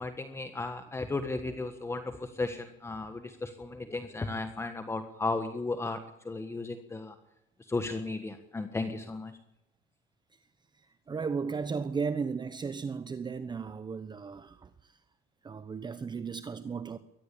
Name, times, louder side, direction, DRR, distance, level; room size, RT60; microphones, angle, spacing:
voice 1, 0.0-6.0 6.2-7.1 7.7-9.3, left 3 dB, 10° left, 1.5 m, -35 dB
voice 2, 10.7-15.0 15.4-17.0, right 5 dB, 20° right, 1.1 m, -35 dB
22.5 x 18.5 x 8.7 m
cardioid pair, 125°, 21 cm